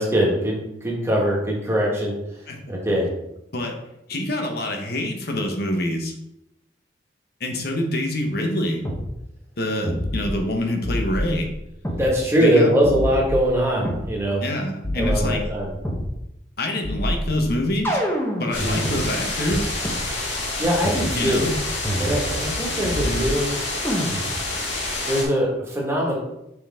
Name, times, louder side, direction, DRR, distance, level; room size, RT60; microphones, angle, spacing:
voice 1, 0.0-2.1 2.7-3.1 12.0-14.4 14.9-15.7 18.5-18.9 20.6-21.5 22.0-23.6 25.0-26.2, equal, 15° right, -3 dB, 1.8 m, -22 dB
voice 2, 4.1-6.1 7.4-8.8 9.6-11.5 12.4-12.7 14.4-15.4 16.6-18.0 18.4-19.7 21.1-21.5, left 1 dB, 55° left, 3 dB, 1.2 m, -26 dB
sound 1, 8.8-9.0 9.8-10.5 10.8-12.0 12.8-14.1 14.8-16.1 16.8-19.0 19.8-19.9 20.8-21.1 21.8-22.5 22.8-23.5 23.8-24.5, equal, 15° left, 1.1 m, -27 dB
sound 2, 18.5-25.2, left 2 dB, 75° left, 1.8 m, -28 dB
6.3 x 5.4 x 3.7 m, 0.84 s
head